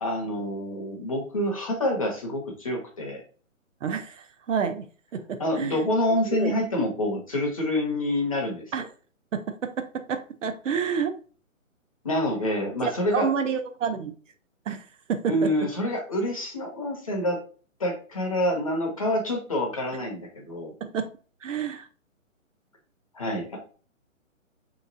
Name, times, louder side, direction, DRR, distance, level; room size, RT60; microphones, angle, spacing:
voice 1, 0.0-3.2 5.4-8.6 12.0-13.3 15.3-17.4 17.8-20.7 23.1-23.6, left 1 dB, 25° left, 0.6 m, -27 dB
voice 2, 3.8-4.9 5.1-5.8 6.3-6.5 8.7-8.8 9.3-11.2 12.8-14.1 14.7-15.5 20.8-21.1 21.4-21.9, right 7 dB, 65° right, 0.6 m, -29 dB
3.6 x 2.9 x 2.5 m
hypercardioid pair, 160°, 41 cm